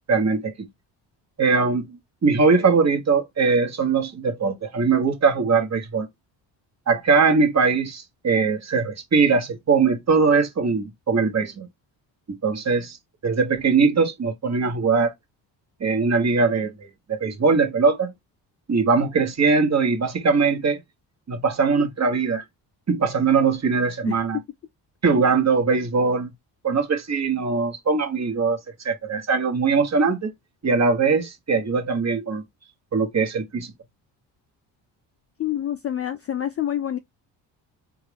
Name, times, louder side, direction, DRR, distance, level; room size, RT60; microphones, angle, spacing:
voice 1, 0.1-0.7 1.4-6.1 6.9-11.7 12.3-13.0 13.2-15.1 15.8-18.1 18.7-20.8 21.3-22.4 22.9-24.4 25.0-26.3 26.6-30.3 30.6-32.4 32.9-33.7, right 4 dB, 35° right, 1.3 m, -21 dB
voice 2, 35.4-37.0, left 11 dB, 35° left, 0.4 m, -27 dB
3.6 x 2.4 x 3.3 m
supercardioid pair, 60°, 48 cm